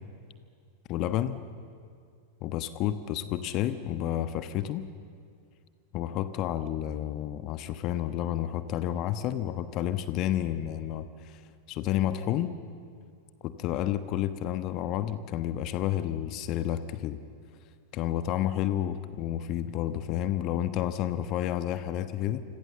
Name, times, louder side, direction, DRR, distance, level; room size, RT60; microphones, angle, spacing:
voice 1, 0.9-1.4 2.4-4.9 5.9-11.4 11.7-12.5 13.4-17.2 17.9-22.4, left 12 dB, 40° left, 11 dB, 1.2 m, -30 dB
29.0 x 26.0 x 6.9 m, 2.3 s
figure-of-eight pair, 90°, 0 cm